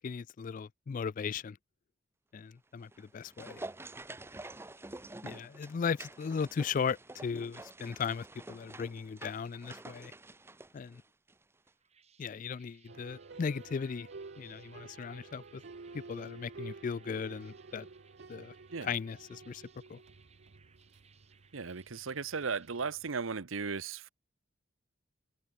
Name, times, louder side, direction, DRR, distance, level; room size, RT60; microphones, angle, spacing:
voice 1, 0.0-1.6 2.3-3.6 5.2-10.1 10.7-11.0 12.2-14.1 14.4-15.6 15.9-17.9 18.3-18.5 18.8-19.6 19.9-20.0, left 6 dB, 40° left, 0.3 m, -37 dB
sound 1, 2.8-11.4 11.7-11.8, right 2 dB, 10° right, 0.7 m, -48 dB
sound 2, 11.6-22.7, right 7 dB, 35° right, 4.3 m, -65 dB
sound 3, 12.9-23.1, right 4 dB, 55° right, 0.7 m, -51 dB
voice 2, 21.5-24.1, right 5 dB, 90° right, 0.9 m, -36 dB
open air
head